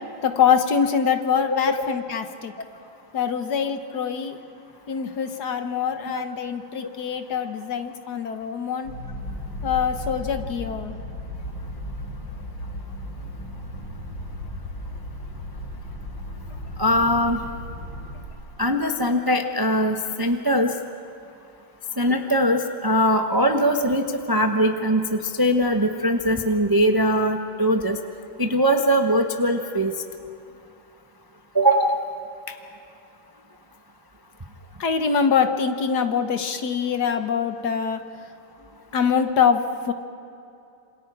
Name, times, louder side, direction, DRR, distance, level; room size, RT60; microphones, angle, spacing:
voice 1, 0.2-2.5 3.1-4.4 4.9-8.9 9.6-10.9 34.8-38.0 38.9-39.9, left 7 dB, 55° left, 7 dB, 1.6 m, -24 dB
sound 1, 8.8-18.2, left 1 dB, 85° left, 5.8 m, -35 dB
voice 2, 16.8-17.4 18.6-20.7 22.0-28.0 28.4-29.9 31.5-32.0, equal, 25° right, 4 dB, 0.5 m, -21 dB
27.5 x 27.0 x 4.8 m, 2.7 s
omnidirectional pair, 2.2 m